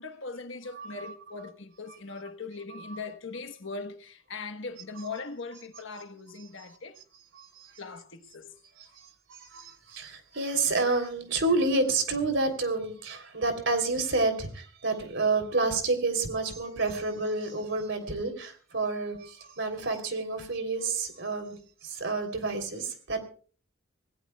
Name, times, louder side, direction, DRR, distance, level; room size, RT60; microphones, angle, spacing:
voice 1, 0.0-7.0 7.8-8.6, left 4 dB, 65° left, 1.3 m, -40 dB
voice 2, 0.8-1.1 5.9-6.0 7.3-7.7 8.8-21.6 21.8-23.2, right 3 dB, 60° right, 3.3 m, -29 dB
26.5 x 17.0 x 2.3 m
head